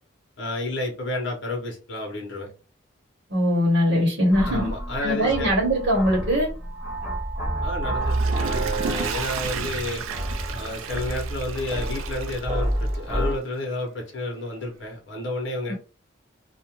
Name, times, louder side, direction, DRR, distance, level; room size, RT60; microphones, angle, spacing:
voice 1, 0.4-2.5 4.5-5.5 7.6-10.0 10.5-15.7, left 1 dB, 65° left, 0.9 m, -31 dB
voice 2, 3.3-4.7 5.0-6.5 15.7-15.8, equal, 70° right, 1.0 m, -21 dB
sound 1, 4.3-13.3, right 1 dB, 10° right, 0.6 m, -29 dB
Water / Toilet flush, 7.9-13.2 13.6-13.7, right 7 dB, 90° right, 0.4 m, -33 dB
2.4 x 2.2 x 2.9 m
head